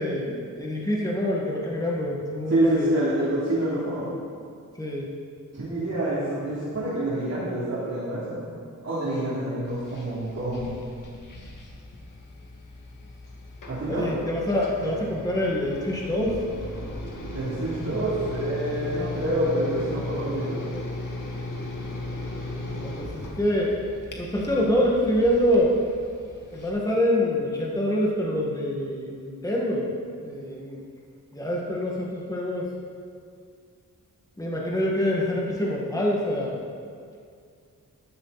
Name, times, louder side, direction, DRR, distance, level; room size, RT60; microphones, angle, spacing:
voice 1, 0.0-2.9 4.8-5.1 13.9-16.4 22.8-23.8 24.2-25.8 26.5-29.9 30.2-30.8 31.3-32.7 34.4-36.6, left 1 dB, 10° left, -3 dB, 1.7 m, -25 dB
voice 2, 2.5-4.1 5.5-8.4 8.8-10.7 13.7-14.1 17.3-20.6, right 1 dB, 55° right, -10 dB, 3.1 m, -27 dB
sound 1, 9.6-26.7, left 1 dB, 70° left, 2.0 m, -37 dB
13.5 x 12.5 x 4.1 m, 2.3 s
wide cardioid pair, 125°, 32 cm